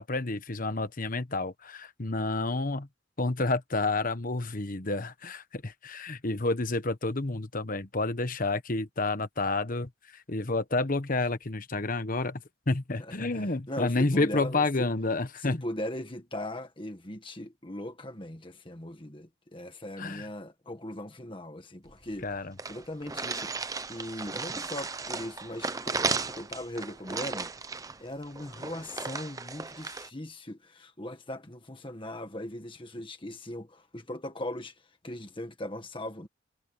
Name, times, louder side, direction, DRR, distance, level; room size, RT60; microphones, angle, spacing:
voice 1, 0.0-2.9 3.2-15.6 20.0-20.3 22.2-22.5, left 2 dB, 40° left, 1.2 m, -30 dB
voice 2, 13.0-14.9 15.4-22.3 22.7-23.5 23.9-27.5 28.0-34.8 35.0-36.3, left 1 dB, 25° left, 1.7 m, -39 dB
sound 1, 21.9-22.0 22.2-22.3 22.6-30.1, right 4 dB, 15° right, 0.6 m, -35 dB
head